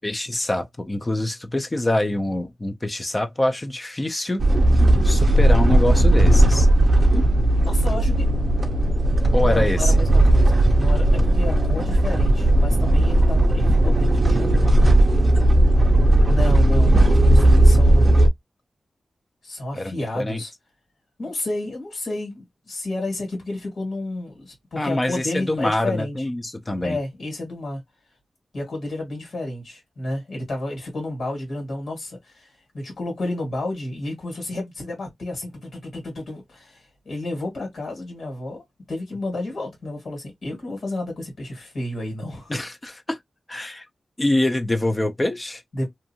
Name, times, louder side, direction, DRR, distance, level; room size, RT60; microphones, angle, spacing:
voice 1, 0.0-4.4 5.0-6.7 9.3-10.0 19.7-20.4 24.8-27.0 42.5-43.2 43.5-43.9 44.2-45.6, left 1 dB, 20° left, 0.4 m, -25 dB
sound 1, 4.4-18.3, right 1 dB, 35° right, 0.5 m, -16 dB
voice 2, 7.6-8.3 9.4-14.9 16.3-18.2 19.4-20.5 21.2-26.2 26.8-27.8 28.5-42.5 45.7-45.9, left 2 dB, 65° left, 1.7 m, -31 dB
2.6 x 2.5 x 2.7 m
wide cardioid pair, 125°, 0 cm